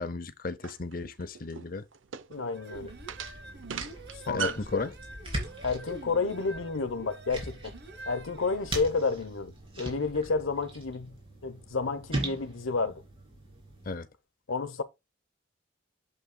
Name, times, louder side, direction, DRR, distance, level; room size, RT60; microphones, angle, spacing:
voice 1, 0.0-1.8 4.3-4.9 13.8-14.1, left 3 dB, 45° left, 0.7 m, -34 dB
sound 1, 0.6-4.8, right 6 dB, 75° right, 0.6 m, -38 dB
voice 2, 2.3-3.0 4.3-4.9 5.6-7.8 8.1-11.2 11.4-13.0 14.5-14.8, left 4 dB, 90° left, 1.0 m, -31 dB
sound 2, 2.4-9.2, right 2 dB, 55° right, 1.0 m, -47 dB
sound 3, 2.7-13.9, right 1 dB, 25° right, 3.3 m, -41 dB
8.4 x 7.2 x 2.3 m
head